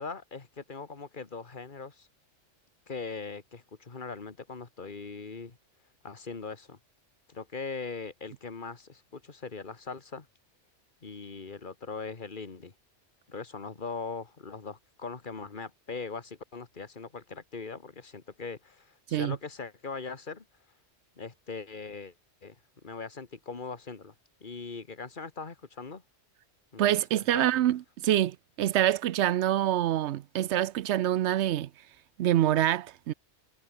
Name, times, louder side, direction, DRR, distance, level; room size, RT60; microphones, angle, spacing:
voice 1, 0.0-2.1 2.9-5.6 6.0-6.8 7.3-10.3 11.0-12.7 13.3-20.4 21.2-22.1 22.4-22.6 22.8-24.1 24.4-26.0 26.7-26.8 27.2-27.5, left 4 dB, 45° left, 1.9 m, -40 dB
voice 2, 26.8-31.7 32.2-33.1, right 12 dB, 70° right, 0.9 m, -26 dB
omnidirectional pair, 1.2 m